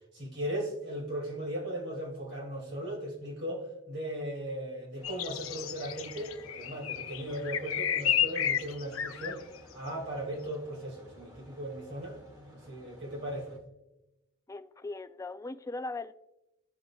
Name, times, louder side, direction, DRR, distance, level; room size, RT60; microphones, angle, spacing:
voice 1, 0.1-9.4 9.7-13.6, right 1 dB, 60° right, -2 dB, 2.4 m, -37 dB
sound 1, 5.0-9.4, left 9 dB, 75° left, 0.6 m, -31 dB
sound 2, 5.0-13.6, equal, 20° right, 1.4 m, -55 dB
voice 2, 14.5-16.1, left 2 dB, 15° left, 10 dB, 0.3 m, -39 dB
15.5 x 5.2 x 2.3 m, 0.94 s
head